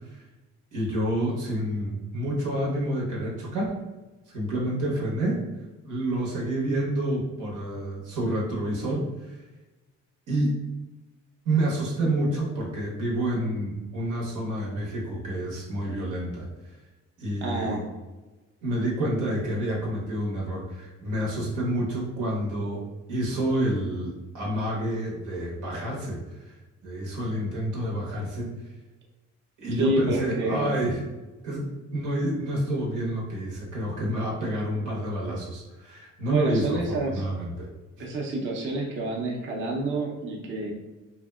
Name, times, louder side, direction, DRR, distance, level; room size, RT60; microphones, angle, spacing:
voice 1, 0.7-3.8 4.3-5.4 5.8-9.4 10.3-10.6 11.4-16.5 17.2-17.8 18.6-26.2 26.4-26.5 26.8-28.5 29.6-31.0 31.4-31.7 31.9-37.7 38.0-38.1, right 1 dB, 85° right, -4 dB, 0.9 m, -28 dB
voice 2, 17.4-17.8 29.8-30.7 36.3-37.2 38.0-40.7, right 2 dB, 40° right, -2 dB, 0.6 m, -28 dB
2.6 x 2.1 x 2.2 m, 1.1 s
cardioid pair, 90°, 30 cm